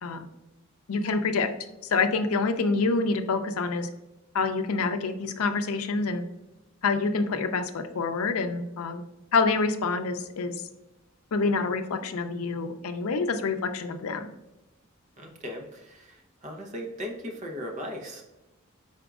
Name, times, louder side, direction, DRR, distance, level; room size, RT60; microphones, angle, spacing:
voice 1, 0.9-1.5 1.8-3.9 4.3-6.2 6.8-9.0 9.3-10.6 11.3-14.3, left 4 dB, 85° left, 8 dB, 0.5 m, -27 dB
voice 2, 15.2-18.2, equal, 35° right, 2 dB, 0.7 m, -38 dB
5.0 x 4.4 x 2.3 m, 0.99 s
head